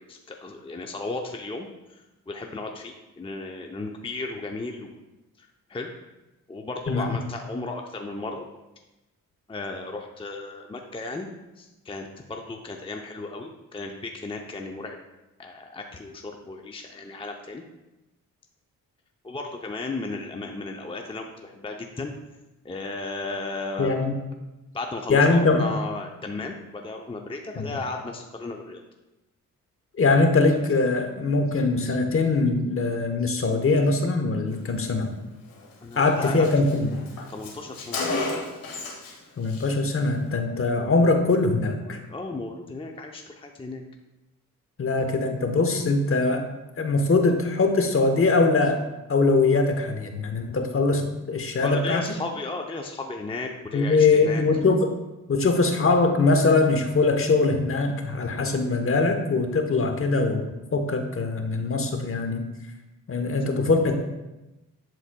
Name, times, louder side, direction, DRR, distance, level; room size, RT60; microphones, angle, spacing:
voice 1, 0.0-2.0 2.3-5.0 5.4-5.9 6.5-8.5 9.5-11.3 11.6-15.0 15.4-17.6 19.2-22.1 22.6-24.1 24.7-28.8 35.8-36.5 37.3-38.0 41.8-43.8 51.6-54.4, left 3 dB, 15° left, 3 dB, 0.6 m, -35 dB
voice 2, 6.9-7.2 23.8-24.2 25.1-25.7 27.6-27.8 30.0-35.1 36.0-36.9 39.4-42.0 44.8-46.4 46.8-48.8 49.1-52.1 53.7-54.9 55.3-62.5 63.1-64.0, left 3 dB, 40° left, 5 dB, 1.0 m, -22 dB
Car, 35.5-35.6 35.9-36.0 36.2-39.2 39.4-39.7, left 3 dB, 85° left, 1.4 m, -32 dB
12.0 x 4.0 x 2.2 m, 1.0 s
cardioid pair, 65°, 33 cm